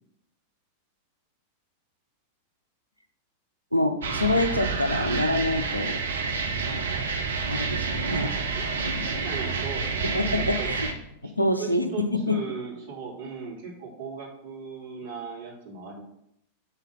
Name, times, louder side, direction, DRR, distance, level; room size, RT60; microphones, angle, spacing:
voice 1, 3.7-6.0 7.5-8.3 8.8-9.0 10.0-10.9 11.2-12.4, left 1 dB, 90° left, 7 dB, 0.6 m, -26 dB
sound 1, 4.0-10.9, right 4 dB, 65° right, 0.8 m, -29 dB
voice 2, 8.5-10.7 11.2-16.0, right 5 dB, 50° right, -5 dB, 2.7 m, -38 dB
5.7 x 3.9 x 5.9 m, 0.77 s
figure-of-eight pair, 90°, 0 cm